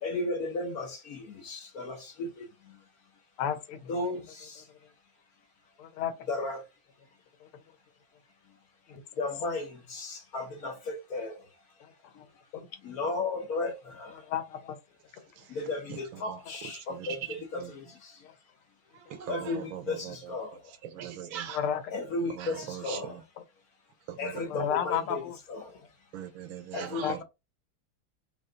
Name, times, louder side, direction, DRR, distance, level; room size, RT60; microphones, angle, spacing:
voice 1, 0.0-2.8 3.8-4.7 6.3-6.7 9.2-11.5 12.1-12.2 12.8-14.3 15.5-18.3 19.3-20.7 21.9-23.3 24.2-25.2 25.5-25.9 26.7-27.2, left 2 dB, 55° left, 1.1 m, -35 dB
voice 2, 3.4-3.8 5.8-6.1 7.4-7.5 8.9-9.0 11.8-11.9 12.5-12.7 14.2-14.8 18.2-18.3 21.5-21.9 24.5-25.4 27.0-27.2, left 9 dB, 90° left, 1.8 m, -32 dB
voice 3, 19.1-19.8 20.9-21.6 22.4-22.5 22.9-23.0 24.1-24.2 26.1-27.2, right 9 dB, 75° right, 1.5 m, -39 dB
5.4 x 2.5 x 3.7 m
omnidirectional pair, 2.3 m